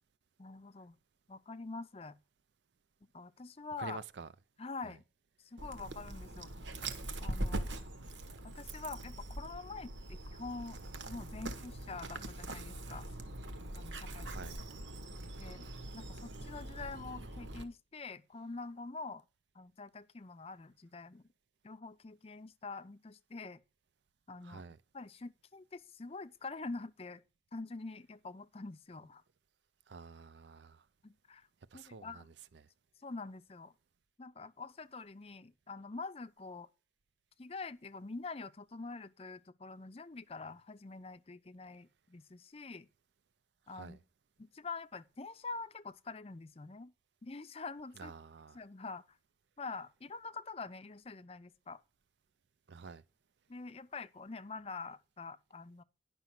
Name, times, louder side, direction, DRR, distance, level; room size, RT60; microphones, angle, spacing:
voice 1, 0.4-1.0 1.3-2.2 3.1-4.0 4.6-5.0 5.4-6.5 7.2-7.7 8.4-10.8 11.1-13.1 13.8-14.3 15.4-15.6 15.9-19.2 19.5-21.3 21.6-23.6 24.3-24.6 24.9-27.2 27.5-29.2 31.0-31.5 31.7-32.3 33.0-33.7 34.2-36.7 37.4-42.9 43.7-44.0 44.4-46.9 47.2-48.1 48.5-49.2 49.6-51.8 53.5-55.8, left 3 dB, 35° left, 0.5 m, -45 dB
voice 2, 3.8-4.3 4.8-4.9 14.0-14.6 24.4-24.8 29.9-30.8 31.7-32.7 43.7-44.0 48.0-48.6 52.7-53.0, right 4 dB, 75° right, 0.5 m, -49 dB
Dog, 5.6-17.6, right 1 dB, 90° right, 1.2 m, -42 dB
10.5 x 6.0 x 5.8 m
head